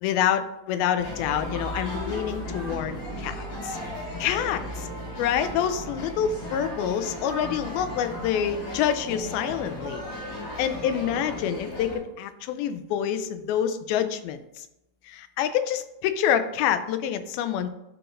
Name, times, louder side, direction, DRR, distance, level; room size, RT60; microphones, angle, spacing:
voice 1, 0.0-3.8 4.2-4.9 5.2-10.0 10.6-14.7 15.1-17.7, left 9 dB, 90° left, 11 dB, 2.4 m, -27 dB
sound 1, 1.0-12.0, left 1 dB, 65° left, 3.3 m, -35 dB
11.0 x 4.8 x 2.5 m, 0.90 s
omnidirectional pair, 4.2 m